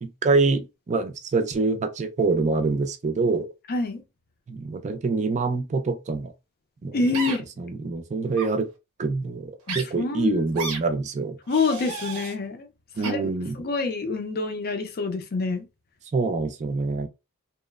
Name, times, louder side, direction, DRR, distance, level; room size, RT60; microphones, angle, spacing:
voice 1, 0.0-3.5 4.5-6.3 6.8-7.0 7.6-8.7 9.0-11.4 13.0-13.6 16.1-17.1, right 3 dB, 35° right, 0.4 m, -25 dB
voice 2, 3.7-4.0 6.9-7.5 9.7-10.4 11.5-12.7 13.0-13.2 13.6-15.6, left 3 dB, 45° left, 0.5 m, -26 dB
sound 1, 7.1-7.4 8.3-8.5 9.7-9.8 10.5-10.8 11.5-12.3 13.0-13.1, right 4 dB, 75° right, 0.7 m, -32 dB
2.9 x 2.0 x 2.2 m
head